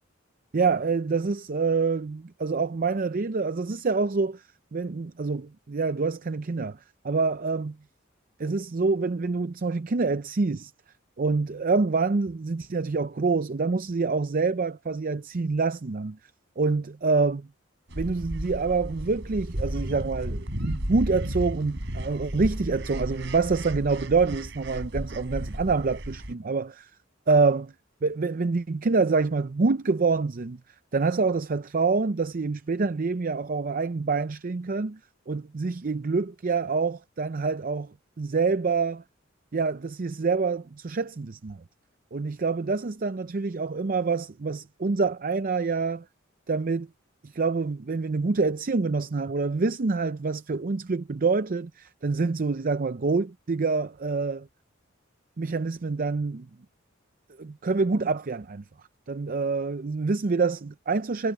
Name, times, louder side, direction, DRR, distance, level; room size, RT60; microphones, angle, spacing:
voice 1, 0.5-4.4 4.7-6.8 7.0-7.8 8.4-10.7 11.2-16.2 16.6-17.5 18.0-26.9 27.3-27.7 28.0-30.6 30.9-35.0 35.3-39.0 39.5-41.6 42.1-46.0 46.5-46.9 47.2-54.5 55.4-56.5 57.4-58.6 59.1-61.3, right 4 dB, 45° right, 0.5 m, -26 dB
sound 1, 17.9-26.3, equal, 65° right, 5.0 m, -33 dB
head